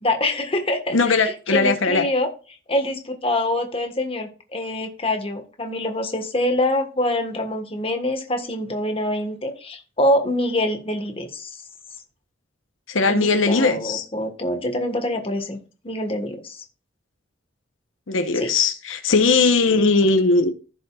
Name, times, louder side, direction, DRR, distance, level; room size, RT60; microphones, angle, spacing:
voice 1, 0.0-2.3 2.7-11.6 13.1-15.6 15.8-16.6 18.3-18.5, left 1 dB, 30° left, 1.4 m, -25 dB
voice 2, 0.9-2.0 12.9-14.0 18.1-20.5, left 3 dB, 85° left, 1.0 m, -19 dB
15.0 x 5.3 x 2.4 m
head